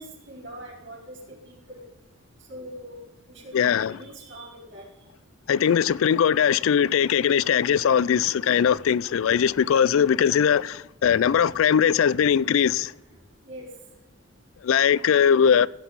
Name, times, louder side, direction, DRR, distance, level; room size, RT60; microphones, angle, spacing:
voice 1, 0.0-1.9 2.5-3.0 3.3-4.9 7.7-7.8 8.7-8.8 11.2-11.3 13.5-13.7, right 1 dB, 55° right, 4.3 m, -43 dB
voice 2, 3.5-3.9 5.5-12.9 14.6-15.7, left 8 dB, 70° left, 0.3 m, -20 dB
16.5 x 8.1 x 4.0 m
head